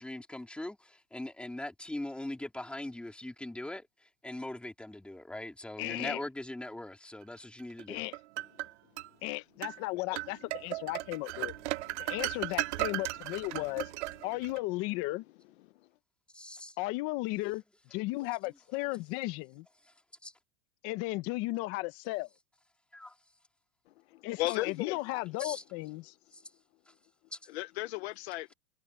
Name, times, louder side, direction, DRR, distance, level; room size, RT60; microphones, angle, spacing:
voice 1, 0.0-8.0 16.3-16.8 20.2-20.3 22.9-23.2 25.4-25.6 26.3-26.4 26.9-27.0 27.3-27.4, left 1 dB, 5° left, 3.0 m, -41 dB
voice 2, 5.8-6.2 7.9-8.2 9.2-11.5 12.0-13.9 14.2-15.2 16.8-17.6 17.9-19.7 20.8-22.3 24.2-26.1, left 21 dB, 40° left, 1.0 m, -35 dB
sound 1, 7.8-9.1 9.6-9.8 10.2-14.6, right 18 dB, 70° right, 0.8 m, -36 dB
voice 3, 23.9-25.0 27.5-28.5, left 18 dB, 60° left, 1.0 m, -36 dB
supercardioid pair, 170°, 36 cm